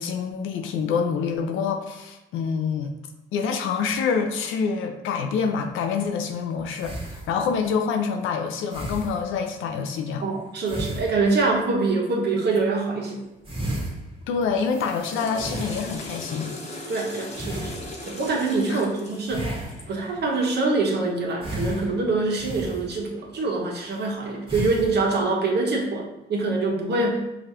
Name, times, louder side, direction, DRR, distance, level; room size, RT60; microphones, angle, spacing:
voice 1, 0.0-2.9 3.3-10.2 14.3-16.5 18.7-18.8, left 6 dB, 85° left, 5 dB, 0.5 m, -26 dB
sound 1, 5.7-5.8 6.8-7.7 8.7-9.5 10.5-11.8 12.4-12.6 13.1-13.2 13.4-16.3 17.3-18.3 19.3-20.2 21.4-23.3 23.9-24.1 24.5-25.0, right 1 dB, 25° right, 1.4 m, -34 dB
voice 2, 10.2-13.2 16.9-19.5 19.9-27.4, right 3 dB, 60° right, 0 dB, 0.9 m, -25 dB
Water / Toilet flush, 14.9-20.0, left 2 dB, 35° left, 0.8 m, -38 dB
4.8 x 2.4 x 2.9 m, 0.93 s
cardioid pair, 90°, 20 cm